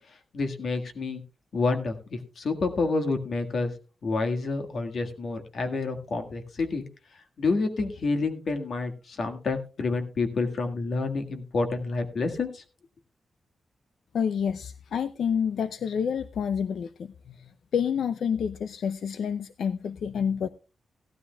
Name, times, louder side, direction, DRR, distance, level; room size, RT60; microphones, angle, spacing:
voice 1, 0.1-1.2 1.5-3.7 4.0-6.8 7.4-12.6, left 3 dB, 60° left, 6 dB, 1.7 m, -28 dB
voice 2, 14.1-20.5, left 7 dB, 80° left, 13 dB, 0.4 m, -29 dB
17.0 x 12.5 x 2.3 m, 0.33 s
wide cardioid pair, 125°, 0 cm